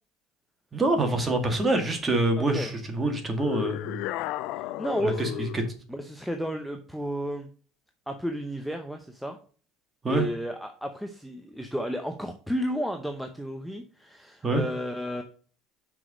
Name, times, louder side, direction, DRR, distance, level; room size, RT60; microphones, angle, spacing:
voice 1, 0.7-4.0 5.0-5.6 10.0-10.2 14.4-14.6, right 2 dB, 20° right, 5 dB, 1.7 m, -26 dB
voice 2, 2.4-2.7 4.6-5.4 5.9-7.5 8.1-9.4 10.1-15.2, equal, ahead, 5 dB, 0.7 m, -32 dB
sound 1, 3.4-5.7, left 15 dB, 65° left, 0.5 m, -34 dB
6.0 x 4.7 x 5.0 m, 0.41 s
cardioid pair, 125°, 0 cm